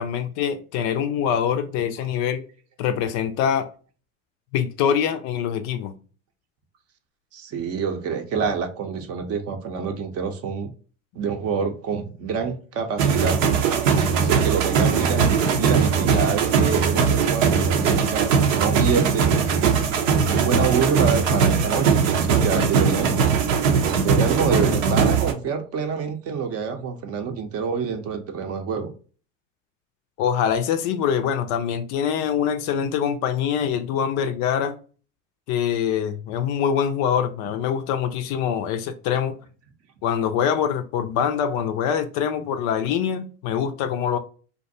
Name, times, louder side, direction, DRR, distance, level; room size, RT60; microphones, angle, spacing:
voice 1, 0.0-2.4 2.8-3.7 4.5-5.9 30.2-34.8 35.5-39.4 40.0-44.2, left 8 dB, 50° left, 0.4 m, -24 dB
voice 2, 7.3-10.7 11.1-13.4 14.1-19.3 20.1-23.1 24.0-28.9, right 6 dB, 40° right, 0.6 m, -27 dB
sound 1, 13.0-25.3, right 6 dB, 80° right, 0.6 m, -20 dB
2.5 x 2.2 x 2.6 m
hypercardioid pair, 85°, 38 cm